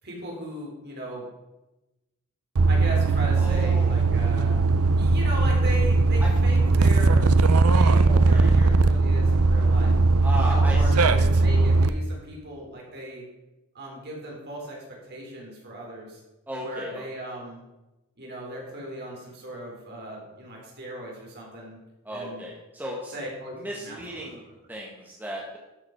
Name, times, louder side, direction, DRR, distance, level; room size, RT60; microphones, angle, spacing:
voice 1, 0.0-1.2 2.7-4.5 5.0-7.2 7.5-9.9 10.4-13.2 13.7-14.8 15.1-16.2 16.6-17.6 18.2-21.8 22.1-22.4 23.1-23.5 23.8-24.3, right 1 dB, 45° right, -2 dB, 3.7 m, -37 dB
sound 1, 2.6-11.9, right 3 dB, 75° right, 0.6 m, -19 dB
voice 2, 3.4-4.0 6.2-6.3 8.1-8.5 10.2-11.1 16.5-17.0 22.0-23.1 23.5-25.6, right 1 dB, 10° right, -3 dB, 1.5 m, -35 dB
13.0 x 6.3 x 5.8 m, 1.0 s
head